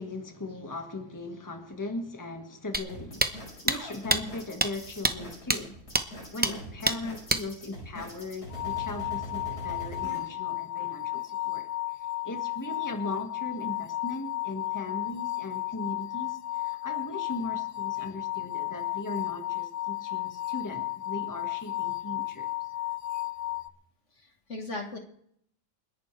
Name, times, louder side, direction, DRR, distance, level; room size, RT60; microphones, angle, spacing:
voice 1, 0.0-5.8 6.3-11.7 12.0-22.5, left 2 dB, 10° left, 4 dB, 1.7 m, -38 dB
sound 1, 2.7-2.8 3.2-3.3 3.7-3.8 4.1-4.2 4.6-4.7 5.0-5.1 5.5-5.6 6.0-6.1 6.4-6.5 6.9-7.0 7.3-7.4, right 1 dB, 10° right, 0.5 m, -24 dB
sound 2, 2.9-10.2, equal, 90° left, 5.5 m, -42 dB
sound 3, 8.5-23.7, left 16 dB, 65° left, 1.1 m, -33 dB
voice 2, 24.1-25.0, left 2 dB, 50° left, 4 dB, 1.9 m, -38 dB
29.0 x 11.0 x 3.3 m, 0.69 s
omnidirectional pair, 1.6 m